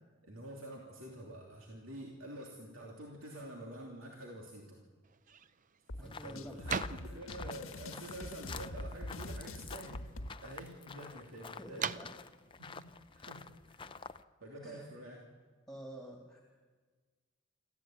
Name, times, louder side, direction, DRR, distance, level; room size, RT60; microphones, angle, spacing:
voice 1, 0.2-4.8 6.0-10.0 10.4-11.9 12.6-12.8 13.1-14.0 14.4-15.2, right 1 dB, 80° right, -1 dB, 2.9 m, -48 dB
sound 1, 5.0-14.2, right 6 dB, 40° right, 0.6 m, -46 dB
sound 2, 5.9-10.3, left 1 dB, 90° left, 1.3 m, -44 dB
voice 2, 6.0-6.6 11.1-11.2 11.6-12.1 14.6-14.9 15.7-16.4, equal, 5° left, 0 dB, 2.5 m, -49 dB
sound 3, 6.1-14.2, left 5 dB, 25° left, 0.6 m, -49 dB
26.0 x 14.5 x 9.0 m, 1.5 s
head